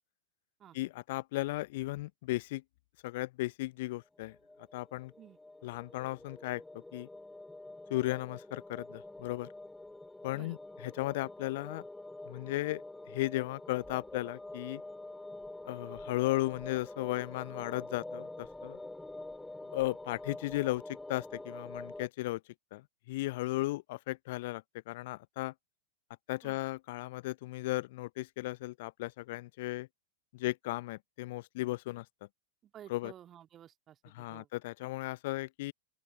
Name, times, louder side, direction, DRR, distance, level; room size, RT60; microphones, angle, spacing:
voice 1, 0.7-2.6 3.0-4.4 4.7-5.1 5.6-6.6 6.9-7.1 7.9-9.5 10.2-10.6 10.8-11.8 12.3-12.8 13.1-14.8 15.7-18.8 19.7-22.4 22.7-25.5 26.3-29.9 30.3-32.0 32.9-33.1 34.1-35.7, left 19 dB, 50° left, 0.9 m, -35 dB
sound 1, 4.2-22.1, left 2 dB, 5° left, 2.8 m, -47 dB
voice 2, 32.6-34.5, right 10 dB, 30° right, 2.4 m, -53 dB
open air
figure-of-eight pair, 90°, 0 cm